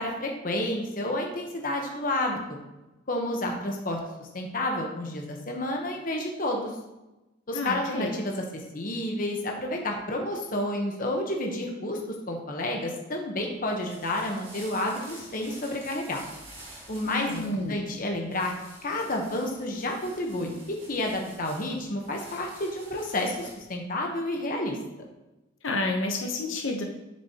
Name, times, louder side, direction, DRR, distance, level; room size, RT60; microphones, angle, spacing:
voice 1, 0.0-2.6 3.1-6.7 7.5-8.4 8.7-12.0 12.3-16.2 16.9-17.4 17.7-18.5 18.8-24.8, left 1 dB, 45° left, 1 dB, 1.0 m, -30 dB
voice 2, 7.5-8.1 17.0-17.8 25.6-26.8, left 2 dB, 85° left, 2 dB, 0.8 m, -30 dB
sound 1, 13.5-23.7, right 2 dB, 30° right, 1.7 m, -49 dB
6.8 x 6.5 x 2.9 m, 1.0 s
head